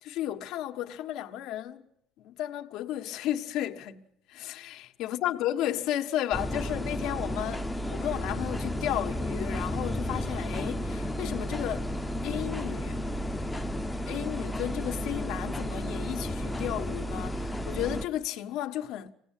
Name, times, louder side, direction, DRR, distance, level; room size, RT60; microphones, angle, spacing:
voice 1, 0.0-1.8 2.2-11.9 12.2-13.0 14.1-19.1, left 12 dB, 75° left, 1.6 m, -33 dB
sound 1, 6.3-18.1, equal, 5° left, 0.9 m, -33 dB
26.0 x 18.5 x 9.1 m
cardioid pair, 150°, 0 cm